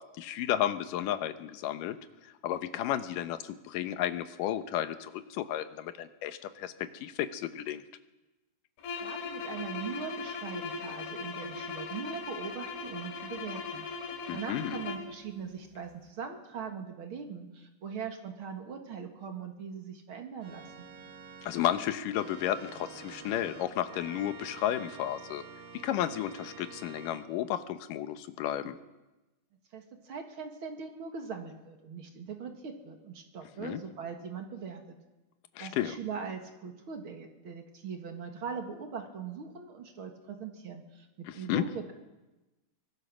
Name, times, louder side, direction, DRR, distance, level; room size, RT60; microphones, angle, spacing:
voice 1, 0.0-2.0 2.4-3.4 3.7-6.7 7.0-7.8 14.3-14.8 21.4-25.4 25.8-28.8 33.6-33.8 35.6-36.0 41.5-41.6, left 11 dB, 70° left, 10 dB, 2.4 m, -32 dB
sound 1, 8.8-15.2, left 4 dB, 90° left, 4.2 m, -39 dB
voice 2, 9.0-13.9 14.3-20.9 29.7-35.0 35.6-41.8, right 6 dB, 45° right, 4 dB, 2.1 m, -41 dB
Organ, 20.4-27.2, right 5 dB, 70° right, 4.0 m, -48 dB
23.5 x 20.5 x 6.2 m, 1.1 s
omnidirectional pair, 4.2 m